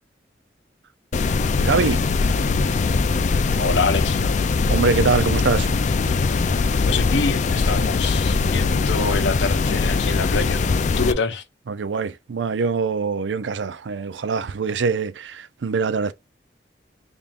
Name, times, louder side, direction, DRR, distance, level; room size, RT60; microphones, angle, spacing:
sound 1, 1.1-11.1, left 4 dB, 40° left, 0.3 m, -21 dB
voice 1, 1.6-2.0 4.7-5.7 11.7-16.1, right 5 dB, 85° right, 0.5 m, -23 dB
voice 2, 3.6-4.2 6.9-10.6 11.0-11.4, left 4 dB, 85° left, 0.7 m, -25 dB
3.6 x 3.6 x 2.5 m
head